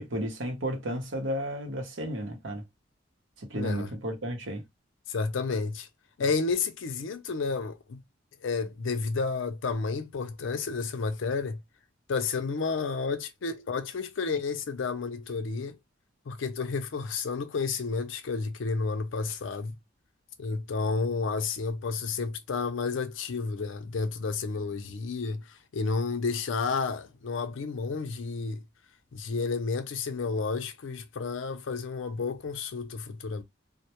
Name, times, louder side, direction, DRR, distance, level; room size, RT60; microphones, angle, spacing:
voice 1, 0.0-2.6 3.4-4.6, right 1 dB, 80° right, 0.8 m, -33 dB
voice 2, 3.5-3.9 5.1-5.9 6.2-8.0 8.4-11.6 12.1-15.8 16.3-19.7 20.4-25.5 25.7-28.6 29.1-33.4, left 4 dB, 80° left, 0.5 m, -31 dB
2.1 x 2.1 x 2.8 m
head